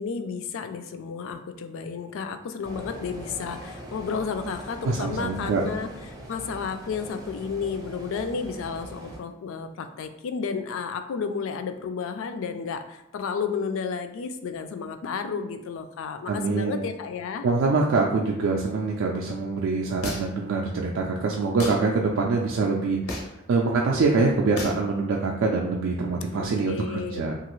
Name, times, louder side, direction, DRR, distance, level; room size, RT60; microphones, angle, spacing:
voice 1, 0.0-5.9 6.3-17.5 26.4-27.2, left 5 dB, 65° left, 8 dB, 0.3 m, -32 dB
sound 1, 2.6-9.2, right 1 dB, 15° right, 0.5 m, -41 dB
voice 2, 4.8-5.6 16.3-16.8 17.4-27.4, right 3 dB, 65° right, -1 dB, 0.3 m, -25 dB
sound 2, 20.0-20.5 21.6-21.8 23.1-23.4 24.6-24.8, left 2 dB, 90° left, 0.7 m, -33 dB
3.0 x 2.4 x 3.0 m, 0.85 s
head